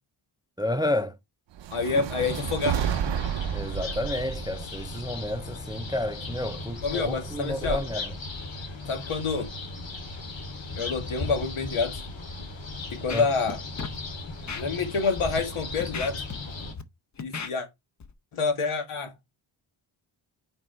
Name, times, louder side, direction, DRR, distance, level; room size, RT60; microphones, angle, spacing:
voice 1, 0.6-1.2 1.9-2.0 3.5-8.1 13.1-13.3, left 1 dB, 10° right, 0.3 m, -30 dB
sound 1, 1.5-5.8, right 9 dB, 65° right, 0.5 m, -31 dB
voice 2, 1.7-2.8 6.8-7.8 8.9-9.5 10.7-12.0 12.9-13.6 14.6-16.2 17.2-17.7 18.3-19.1, left 4 dB, 85° left, 1.9 m, -27 dB
sound 2, 2.2-16.7, left 2 dB, 65° left, 2.1 m, -37 dB
Scratching (performance technique), 12.9-13.5 13.8-14.0 14.5-14.6 15.2-15.4 15.8-16.8 17.2-17.5 18.0-18.1, left 5 dB, 35° left, 0.7 m, -35 dB
6.1 x 4.6 x 4.4 m
wide cardioid pair, 170°, 48 cm